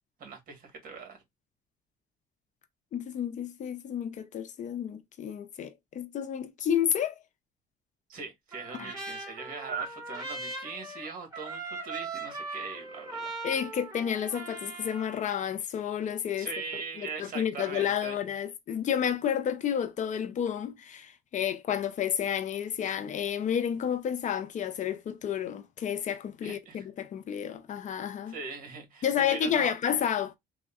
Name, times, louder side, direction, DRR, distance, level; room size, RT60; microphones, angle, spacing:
voice 1, 0.2-1.2 8.1-13.3 16.4-18.2 26.4-26.8 28.3-29.7, right 5 dB, 55° right, 1.3 m, -40 dB
voice 2, 2.9-7.1 8.7-8.9 13.4-16.5 17.0-28.4 29.0-30.4, left 9 dB, 45° left, 0.5 m, -31 dB
Trumpet, 8.5-15.2, right 3 dB, 20° right, 1.7 m, -40 dB
3.4 x 2.1 x 2.3 m
cardioid pair, 110°, 17 cm